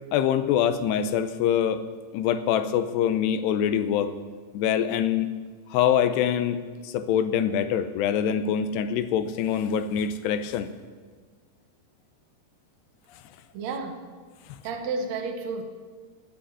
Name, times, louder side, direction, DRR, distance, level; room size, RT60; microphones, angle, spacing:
voice 1, 0.1-1.8 2.1-4.1 4.5-5.3 5.7-10.7 13.1-13.2, left 9 dB, 85° left, 10 dB, 2.9 m, -24 dB
voice 2, 13.5-14.1 14.6-15.6, right 4 dB, 70° right, 4 dB, 1.6 m, -31 dB
17.0 x 6.4 x 9.8 m, 1.5 s
omnidirectional pair, 4.8 m